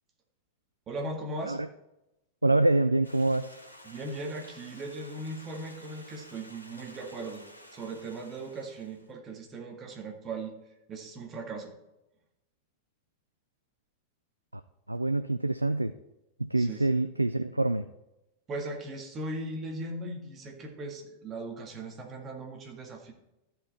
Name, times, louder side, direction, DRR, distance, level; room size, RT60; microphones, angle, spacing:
voice 1, 0.9-1.6 3.8-7.4 7.7-10.6 10.9-11.7 16.6-16.9 18.5-23.1, right 2 dB, 25° right, 2 dB, 2.0 m, -38 dB
voice 2, 2.4-3.5 14.5-14.6 14.9-15.9 16.4-17.9, right 2 dB, 85° right, 11 dB, 0.3 m, -26 dB
Stream, 3.0-9.1, equal, 85° left, 1.4 m, -52 dB
13.0 x 5.7 x 4.3 m, 0.93 s
figure-of-eight pair, 90°, 0 cm